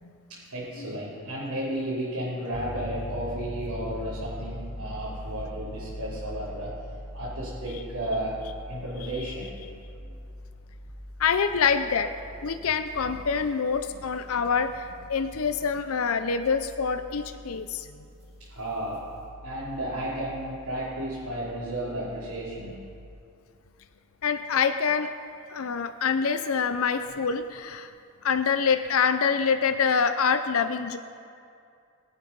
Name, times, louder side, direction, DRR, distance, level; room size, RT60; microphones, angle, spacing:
voice 1, 0.3-6.8 7.1-10.1 18.4-19.1 19.4-22.9, right 1 dB, 90° right, -10 dB, 3.7 m, -33 dB
Piano, 2.5-13.8, equal, 50° left, 3.7 m, -40 dB
sound 1, 10.2-23.1, equal, 30° right, 4.0 m, -50 dB
voice 2, 11.2-12.1 12.4-17.9 24.2-25.1 25.5-27.9 28.2-31.0, left 6 dB, 70° left, 8 dB, 0.6 m, -26 dB
21.5 x 8.1 x 5.4 m, 2.5 s
head